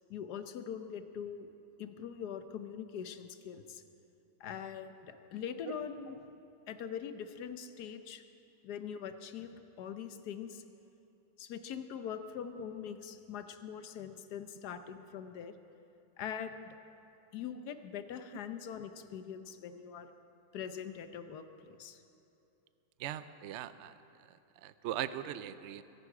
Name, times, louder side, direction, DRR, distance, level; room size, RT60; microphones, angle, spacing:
voice 1, 0.1-1.5 1.8-3.8 4.4-6.2 6.7-8.2 8.6-10.6 11.4-15.5 16.2-16.7 17.3-20.1 20.5-22.0, left 8 dB, 70° left, 9 dB, 1.3 m, -42 dB
voice 2, 23.0-23.9 24.6-25.8, right 11 dB, 90° right, 13 dB, 0.6 m, -39 dB
22.5 x 11.0 x 4.8 m, 2.8 s
omnidirectional pair, 1.8 m